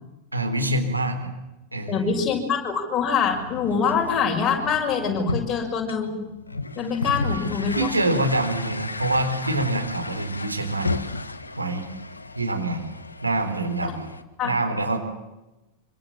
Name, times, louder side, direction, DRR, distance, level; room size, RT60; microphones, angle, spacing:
voice 1, 0.3-1.3 1.7-2.1 7.7-10.9 11.6-11.9 12.4-12.8 13.2-14.0 14.4-15.0, right 2 dB, 85° right, 4 dB, 3.8 m, -25 dB
voice 2, 1.9-6.2 6.8-7.9 13.8-13.9 14.4-14.5, left 6 dB, 25° left, 1 dB, 6.5 m, -24 dB
sound 1, 3.2-14.2, left 3 dB, 80° left, 1.4 m, -33 dB
26.0 x 25.0 x 7.5 m, 1.0 s
figure-of-eight pair, 90°, 0 cm